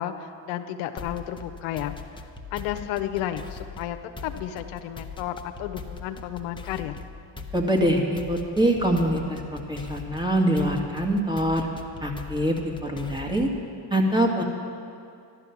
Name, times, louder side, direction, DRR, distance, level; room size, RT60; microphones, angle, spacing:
voice 1, 0.0-2.0 2.5-4.0 4.2-7.0, left 11 dB, 85° left, 7 dB, 0.8 m, -32 dB
sound 1, 1.0-13.6, left 4 dB, 10° left, 1.1 m, -41 dB
voice 2, 7.5-11.7 12.0-13.5 13.9-14.4, right 1 dB, 10° right, 0 dB, 2.0 m, -24 dB
13.0 x 12.0 x 6.0 m, 2.5 s
supercardioid pair, 85°, 47 cm